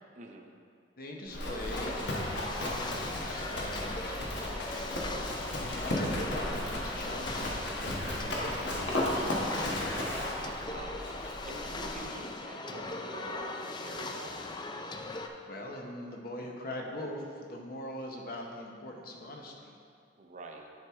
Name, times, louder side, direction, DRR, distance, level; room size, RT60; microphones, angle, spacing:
voice 1, 0.2-0.5 5.1-5.5 10.6-14.4 20.2-20.7, right 2 dB, 40° right, 2 dB, 0.6 m, -46 dB
voice 2, 1.0-4.8 5.5-10.0 15.5-19.7, left 1 dB, 50° left, 0 dB, 0.9 m, -42 dB
Livestock farm animals working animals, 1.3-12.1, left 1 dB, 70° left, 1.3 m, -34 dB
sound 1, 1.7-15.3, left 2 dB, 25° left, 0.4 m, -40 dB
10.5 x 4.5 x 3.5 m, 2.2 s
head